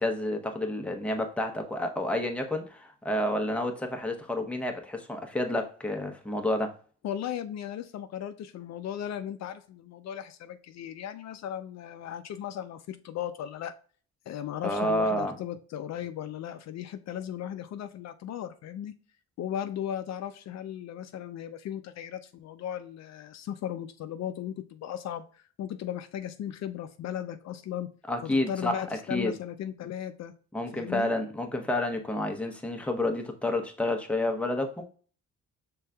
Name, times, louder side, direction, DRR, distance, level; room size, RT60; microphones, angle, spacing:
voice 1, 0.0-6.8 14.6-15.4 28.1-28.8 29.1-29.3 30.5-34.8, left 1 dB, 5° left, 0.8 m, -29 dB
voice 2, 7.0-13.7 14.3-18.9 19.4-27.9 28.2-30.3 30.7-31.1, left 10 dB, 60° left, 0.4 m, -36 dB
5.3 x 3.7 x 2.2 m
cardioid pair, 90°, 30 cm